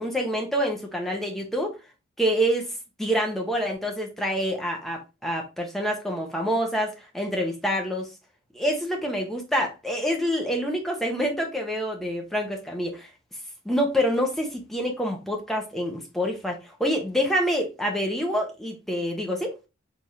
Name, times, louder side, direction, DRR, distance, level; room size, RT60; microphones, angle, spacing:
voice 1, 0.0-1.8 2.2-8.1 8.5-13.1 13.6-19.6, equal, ahead, 1.0 m, -27 dB
5.0 x 3.6 x 2.8 m
head